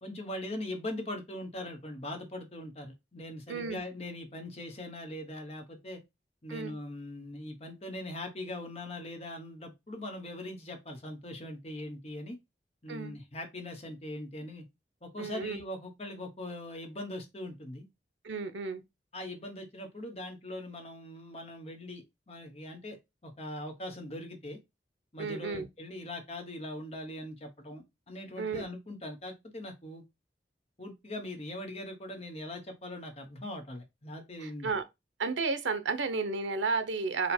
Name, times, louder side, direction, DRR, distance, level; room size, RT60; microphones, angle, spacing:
voice 1, 0.0-6.0 6.4-12.4 12.8-14.6 15.0-17.9 19.1-23.0 23.2-24.6 25.1-30.0 30.8-34.7, left 1 dB, 35° left, 1.0 m, -41 dB
voice 2, 3.5-3.8 6.5-6.7 12.9-13.2 15.2-15.6 18.2-18.8 25.2-25.7 28.4-28.6 34.4-34.8 35.2-37.3, right 4 dB, 90° right, 0.7 m, -32 dB
4.3 x 2.3 x 4.3 m
head